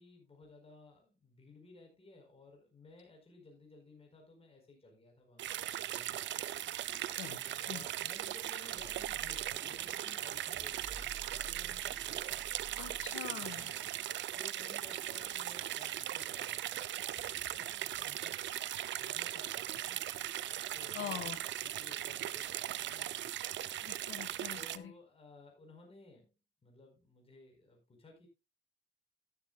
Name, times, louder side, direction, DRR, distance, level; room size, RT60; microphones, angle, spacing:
voice 1, 0.0-6.2 7.4-12.0 13.3-13.9 14.3-18.6 19.0-20.1 20.7-21.3 21.6-23.3 24.5-26.3 26.6-28.3, left 2 dB, 30° left, 2 dB, 4.8 m, -57 dB
sound 1, 5.4-24.8, right 12 dB, 65° right, 0.6 m, -39 dB
sound 2, 8.7-13.9, right 4 dB, 45° right, 2.9 m, -52 dB
voice 2, 12.8-13.7 20.9-21.4 23.8-24.9, left 9 dB, 85° left, 7 dB, 1.7 m, -43 dB
12.5 x 11.5 x 2.4 m, 0.25 s
cardioid pair, 90°, 20 cm